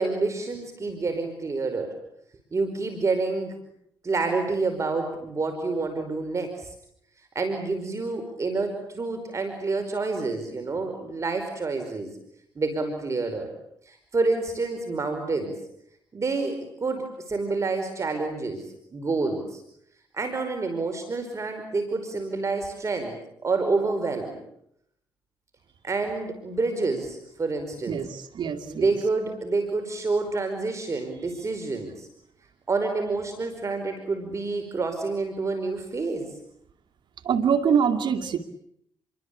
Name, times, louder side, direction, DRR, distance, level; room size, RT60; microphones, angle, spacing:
voice 1, 0.0-1.9 2.5-3.5 4.0-6.7 7.3-12.1 12.5-13.5 13.9-15.5 16.1-18.7 18.9-19.6 20.1-23.2 23.4-24.4 25.8-28.0 28.7-32.1 32.7-36.3, right 3 dB, 35° right, 6 dB, 5.0 m, -28 dB
voice 2, 27.9-28.9 37.2-38.4, right 7 dB, 65° right, 8 dB, 2.4 m, -24 dB
29.5 x 23.5 x 8.5 m, 0.73 s
cardioid pair, 80°, 8 cm